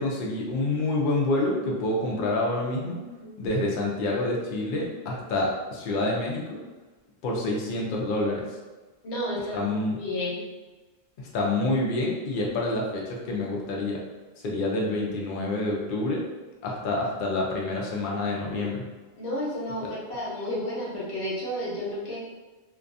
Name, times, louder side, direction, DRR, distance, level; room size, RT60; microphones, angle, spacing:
voice 1, 0.0-3.0 3.4-6.4 7.2-8.6 9.5-10.0 11.2-14.0 14.4-16.2 16.6-18.8, left 2 dB, 60° left, -2 dB, 0.6 m, -27 dB
voice 2, 9.0-10.4 19.2-22.2, left 1 dB, 90° left, -6 dB, 1.1 m, -31 dB
2.3 x 2.3 x 2.5 m, 1.2 s
omnidirectional pair, 1.1 m